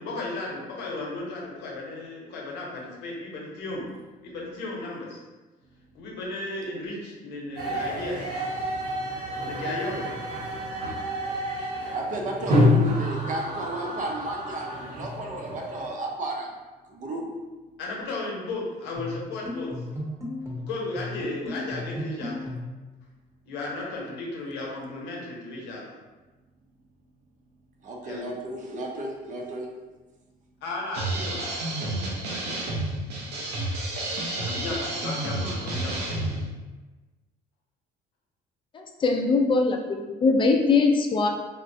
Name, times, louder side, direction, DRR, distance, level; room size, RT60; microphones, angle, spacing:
voice 1, 0.0-3.9 4.2-5.2 5.9-8.3 9.4-10.1 17.8-19.7 20.5-22.5 23.5-25.9 28.0-28.2 30.6-32.7 33.2-33.3 34.4-36.4, left 2 dB, 90° left, -2 dB, 0.8 m, -35 dB
sound 1, 7.6-15.9, left 1 dB, 70° right, 1.2 m, -28 dB
voice 2, 11.6-16.5 16.9-17.3 27.8-29.7, right 1 dB, 50° right, 0 dB, 0.6 m, -33 dB
sound 2, 19.0-22.8, left 1 dB, 15° right, 0.9 m, -35 dB
sound 3, 30.9-36.5, right 2 dB, 85° right, 0.7 m, -30 dB
voice 3, 39.0-41.3, left 4 dB, 30° left, 3 dB, 0.4 m, -21 dB
3.6 x 2.1 x 2.6 m, 1.2 s
cardioid pair, 110°, 17 cm